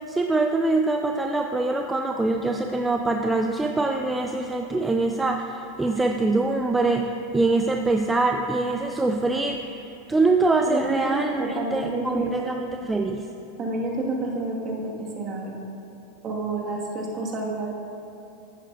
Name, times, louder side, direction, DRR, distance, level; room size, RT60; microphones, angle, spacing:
voice 1, 0.1-9.8 10.1-13.3, right 2 dB, 10° right, 3 dB, 0.4 m, -24 dB
voice 2, 10.6-12.5 13.6-15.6 16.2-17.7, right 2 dB, 35° right, -2 dB, 1.7 m, -29 dB
11.0 x 8.7 x 2.5 m, 2.8 s
hypercardioid pair, 110°, 0 cm